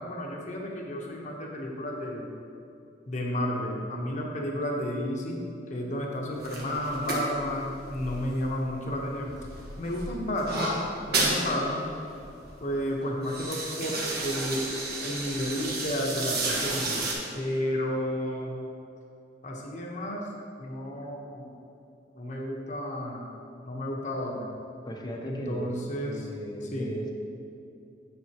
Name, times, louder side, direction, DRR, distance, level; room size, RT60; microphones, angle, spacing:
voice 1, 0.0-2.3 3.1-9.3 9.8-11.9 12.6-14.6 15.0-17.0 17.3-18.6 19.4-20.3 20.6-21.5 22.1-23.3 23.6-24.5 25.2-26.3 26.7-26.9, left 1 dB, 45° left, 0 dB, 1.0 m, -32 dB
sound 1, 6.4-8.9 9.3-11.4 11.8-11.9 12.2-12.6 13.0-17.1, right 2 dB, 60° right, 1.3 m, -32 dB
voice 2, 24.9-25.8 26.0-27.1, equal, 25° left, 1 dB, 0.7 m, -36 dB
7.7 x 6.8 x 2.9 m, 2.7 s
head